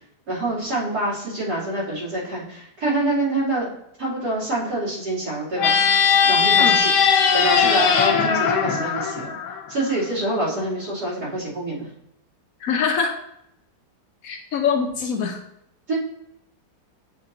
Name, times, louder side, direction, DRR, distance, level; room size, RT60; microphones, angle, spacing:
voice 1, 0.3-3.7 4.0-5.7 6.2-6.9 7.3-9.4 9.7-11.9 15.9-16.0, right 2 dB, 70° right, -9 dB, 3.3 m, -26 dB
sound 1, 5.6-10.0, left 6 dB, 85° left, 1.4 m, -19 dB
voice 2, 12.6-13.2 14.2-15.4, left 6 dB, 65° left, 4 dB, 1.0 m, -24 dB
7.3 x 4.9 x 2.7 m, 0.76 s
omnidirectional pair, 1.8 m